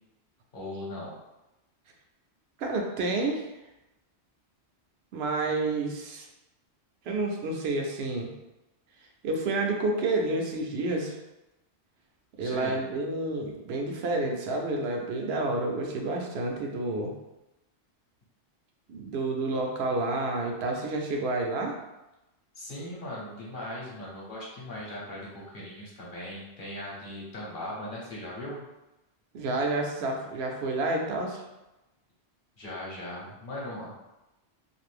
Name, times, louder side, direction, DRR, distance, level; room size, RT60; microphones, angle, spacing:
voice 1, 0.5-1.1 12.4-12.8 22.5-28.6 32.6-34.0, left 1 dB, 50° left, -5 dB, 1.0 m, -39 dB
voice 2, 2.6-3.5 5.1-6.3 7.1-8.3 9.2-11.2 12.4-17.1 18.9-21.7 29.3-31.4, right 2 dB, 70° right, 1 dB, 0.8 m, -29 dB
2.6 x 2.5 x 3.3 m, 0.99 s
omnidirectional pair, 1.2 m